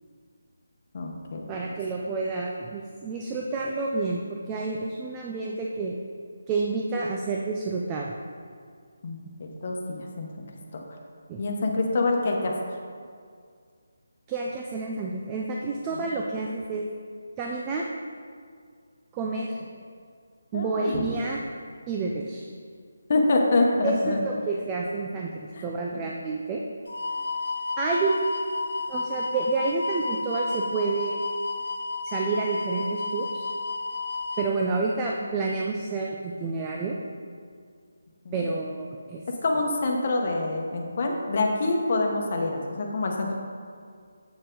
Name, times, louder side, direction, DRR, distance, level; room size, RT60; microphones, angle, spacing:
voice 1, 0.9-1.4 9.0-10.3 11.4-12.5 15.9-16.1 20.5-21.0 23.1-24.2 25.5-25.6 25.9-26.0 38.2-38.5 39.4-43.4, left 2 dB, 35° left, 1 dB, 1.0 m, -26 dB
voice 2, 1.5-4.2 4.5-5.9 6.5-8.1 11.3-11.5 14.3-16.9 17.4-17.9 19.1-19.6 20.5-21.4 21.9-22.5 23.8-26.6 27.8-28.3 28.9-31.2 32.0-33.5 34.4-37.0 38.3-39.2, right 3 dB, 15° right, -1 dB, 0.3 m, -29 dB
sound 1, 26.9-34.5, left 3 dB, 80° left, 0.7 m, -31 dB
7.7 x 6.8 x 3.8 m, 2.1 s
hypercardioid pair, 175°, 0 cm